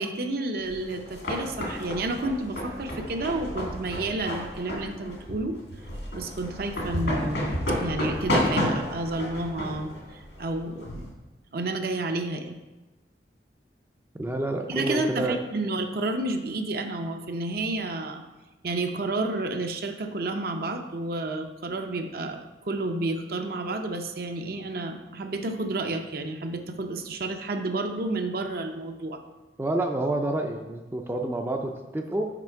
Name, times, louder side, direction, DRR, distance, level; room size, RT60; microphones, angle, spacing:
voice 1, 0.0-5.6 6.1-11.1 11.5-12.6 14.7-18.2 18.6-29.2, right 2 dB, 55° right, 5 dB, 0.6 m, -30 dB
sound 1, 0.7-11.1, equal, 85° left, 1.9 m, -31 dB
voice 2, 14.2-15.4 29.6-32.3, right 2 dB, 15° right, 3 dB, 0.4 m, -28 dB
6.0 x 5.3 x 4.4 m, 1.1 s
head